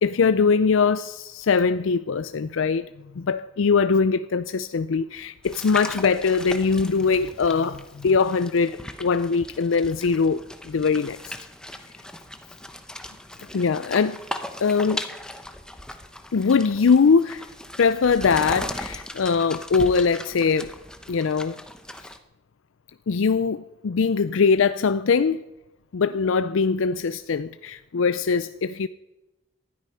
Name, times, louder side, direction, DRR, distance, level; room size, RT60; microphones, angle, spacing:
voice 1, 0.0-11.4 13.5-14.2 14.6-15.0 16.3-17.5 17.8-20.7 21.1-21.6 23.1-25.4 25.9-28.9, left 5 dB, 80° left, 0.5 m, -22 dB
sound 1, 5.4-22.2, left 1 dB, 5° left, 0.9 m, -38 dB
19.0 x 12.5 x 5.6 m
head